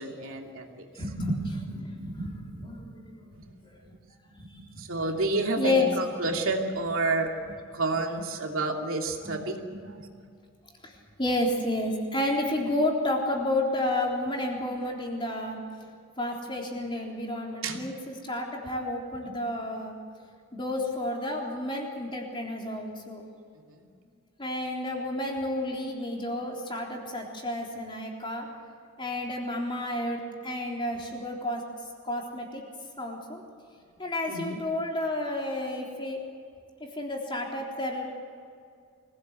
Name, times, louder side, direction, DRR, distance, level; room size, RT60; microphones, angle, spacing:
voice 1, 0.0-0.8 4.8-7.3 7.7-9.6 17.6-17.8 23.7-23.9 34.3-34.6, right 2 dB, 65° right, 2 dB, 2.7 m, -29 dB
voice 2, 1.0-3.3 3.6-3.7 4.3-4.8 5.5-5.9 6.2-6.4 9.2-9.4 9.7-10.1 10.8-15.6 16.2-20.0 20.5-23.2 24.4-28.5 29.0-31.6 32.0-32.6 33.0-33.4 34.0-36.2 36.8-38.1, left 1 dB, 20° left, -1 dB, 3.7 m, -31 dB
24.5 x 17.5 x 8.2 m, 2.3 s
head